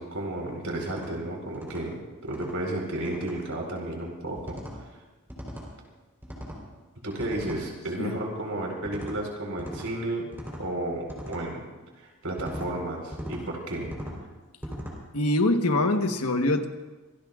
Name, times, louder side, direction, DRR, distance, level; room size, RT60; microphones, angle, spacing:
voice 1, 0.0-4.6 7.0-10.3 10.6-11.6 12.0-13.9, right 1 dB, 70° right, 1 dB, 4.2 m, -32 dB
sound 1, 0.8-1.1 1.5-1.8 2.3-2.6 3.0-3.3 4.4-4.8 5.3-5.7 6.2-6.6 7.2-7.6 8.8-9.2 9.6-9.9 10.3-10.6 11.1-11.4 12.4-12.7 13.1-13.4 13.8-14.2 14.6-15.0, equal, 10° right, 3.8 m, -39 dB
voice 2, 15.1-16.7, left 2 dB, 90° left, 5 dB, 1.3 m, -24 dB
26.0 x 18.0 x 2.5 m, 1.2 s
head